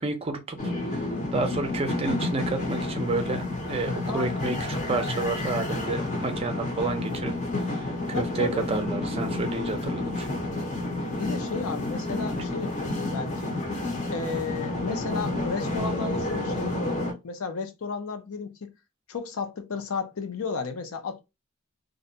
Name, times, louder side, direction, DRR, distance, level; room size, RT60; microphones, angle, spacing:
voice 1, 0.0-7.3 7.6-10.3, right 3 dB, 25° right, 0.4 m, -30 dB
sound 1, 0.6-17.1, left 2 dB, 35° left, 0.6 m, -30 dB
voice 2, 4.1-4.5 8.1-8.7 11.2-13.5 14.1-18.7 19.1-21.2, left 4 dB, 80° left, 0.5 m, -33 dB
2.5 x 2.1 x 2.7 m
head